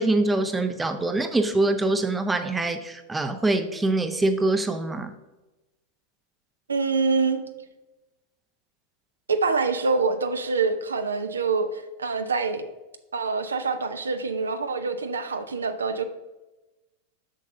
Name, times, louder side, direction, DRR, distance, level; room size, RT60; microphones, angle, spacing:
voice 1, 0.0-5.1, right 2 dB, 10° right, 8 dB, 0.6 m, -24 dB
voice 2, 6.7-7.4 9.3-12.7 13.1-16.0, right 4 dB, 75° right, 8 dB, 0.5 m, -25 dB
7.5 x 6.5 x 2.7 m, 1.1 s
figure-of-eight pair, 90°, 0 cm